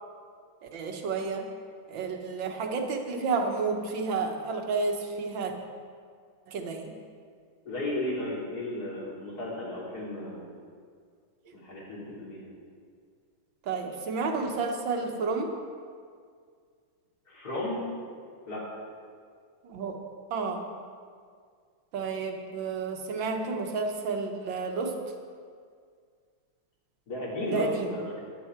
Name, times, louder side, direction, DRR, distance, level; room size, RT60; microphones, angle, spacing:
voice 1, 0.6-1.5 1.9-5.5 6.5-7.0 13.6-15.5 19.6-19.9 20.3-20.7 21.9-25.0 27.5-27.9, right 4 dB, 70° right, 3 dB, 1.9 m, -31 dB
voice 2, 7.7-10.5 11.5-12.5 17.3-17.8 18.5-18.6 27.1-28.2, left 1 dB, 50° left, -5 dB, 3.7 m, -34 dB
14.0 x 11.0 x 4.6 m, 2.1 s
omnidirectional pair, 2.2 m